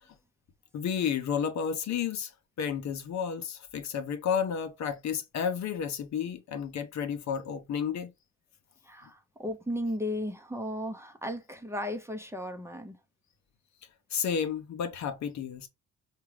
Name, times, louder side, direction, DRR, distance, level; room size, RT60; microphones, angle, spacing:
voice 1, 0.7-2.3 2.6-8.1 14.1-15.7, left 7 dB, 65° left, 0.8 m, -31 dB
voice 2, 8.8-13.0, left 1 dB, 10° right, 0.7 m, -35 dB
4.5 x 2.4 x 3.2 m
cardioid pair, 90°, 30 cm